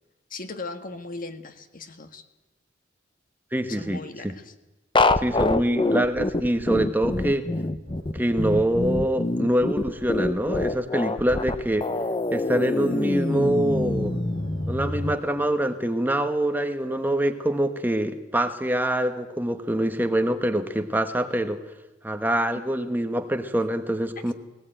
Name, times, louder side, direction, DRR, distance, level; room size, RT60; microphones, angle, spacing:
voice 1, 0.3-2.2 3.7-4.5, left 3 dB, 50° left, 8 dB, 1.6 m, -38 dB
voice 2, 3.5-4.3 5.2-7.4 8.1-11.9 12.3-14.2 14.7-21.6 22.0-24.3, right 1 dB, 10° right, 7 dB, 1.2 m, -25 dB
sound 1, 5.0-15.2, left 2 dB, 25° left, 0.8 m, -25 dB
sound 2, 7.8-15.5, right 1 dB, 55° right, 3.5 m, -49 dB
19.0 x 18.5 x 9.0 m, 1.1 s
head